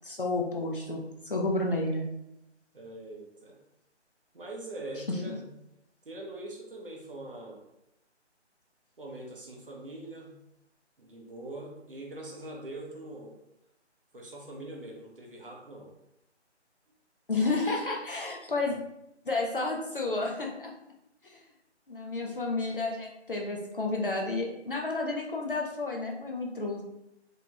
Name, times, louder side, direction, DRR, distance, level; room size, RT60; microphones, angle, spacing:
voice 1, 0.0-2.1 5.1-5.2 17.3-18.8 19.3-20.7 21.2-21.4 21.9-26.8, left 2 dB, 50° left, 0 dB, 0.4 m, -31 dB
voice 2, 2.7-3.6 4.3-5.5 6.0-7.6 9.0-10.4 11.0-13.4 14.1-15.9, right 1 dB, 50° right, -1 dB, 0.6 m, -42 dB
2.8 x 2.7 x 2.2 m, 0.83 s
figure-of-eight pair, 175°, 35 cm